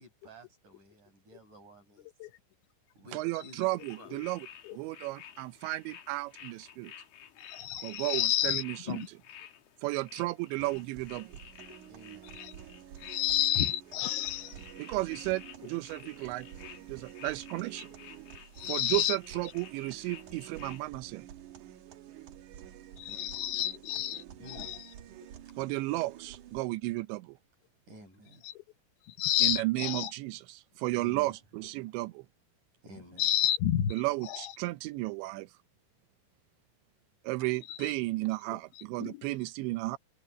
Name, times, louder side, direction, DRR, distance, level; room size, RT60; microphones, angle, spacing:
voice 1, 0.0-2.3 2.9-3.6 4.0-4.1 11.9-12.5 23.0-23.2 24.4-24.8 27.9-28.5 31.0-31.4 32.8-33.3, right 1 dB, 45° right, 9.0 m, -52 dB
voice 2, 3.1-4.5 4.7-6.9 7.8-9.0 9.8-11.4 14.8-16.5 16.9-17.9 18.7-21.3 25.6-27.4 29.4-32.2 33.9-35.5 37.2-40.0, right 20 dB, 85° right, 3.0 m, -33 dB
sound 1, 3.8-20.9, left 9 dB, 65° left, 3.1 m, -52 dB
voice 3, 7.4-9.1 12.4-12.5 13.0-14.6 18.6-19.2 23.0-24.8 28.4-28.5 29.1-30.1 33.2-34.0 34.2-34.5 37.7-37.9 38.7-39.3, left 12 dB, 90° left, 3.7 m, -30 dB
sound 2, 10.6-26.6, right 11 dB, 65° right, 2.1 m, -49 dB
omnidirectional pair, 5.1 m